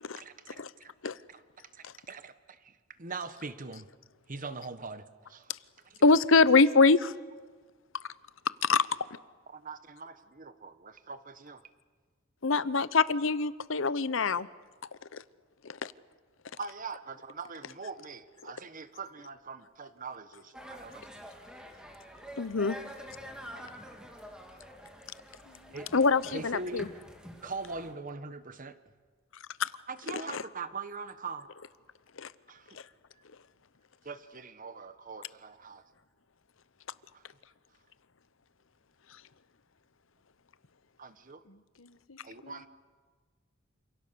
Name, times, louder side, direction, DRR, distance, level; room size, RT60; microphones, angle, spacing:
voice 1, 0.2-0.9 1.3-1.4 1.7-3.9 4.3-5.5 5.8-6.0 9.5-11.6 16.6-21.0 25.7-25.9 26.3-26.9 27.4-28.8 29.9-31.5 32.5-32.8 34.0-35.8 37.1-37.2 41.0-41.4 42.2-42.7, right 4 dB, 40° right, 11 dB, 1.3 m, -42 dB
voice 2, 6.0-7.1 8.5-8.9 12.4-14.5 15.1-15.2 15.6-15.9 22.4-22.8 25.9-26.9 29.6-29.7 30.3-30.4 32.2-32.3, left 4 dB, 65° left, 17 dB, 0.8 m, -24 dB
sound 1, 20.5-27.9, equal, 5° right, 2.5 m, -47 dB
voice 3, 25.4-25.8 41.4-42.7, left 2 dB, 85° left, 11 dB, 1.4 m, -57 dB
29.0 x 27.0 x 6.9 m, 1.5 s
head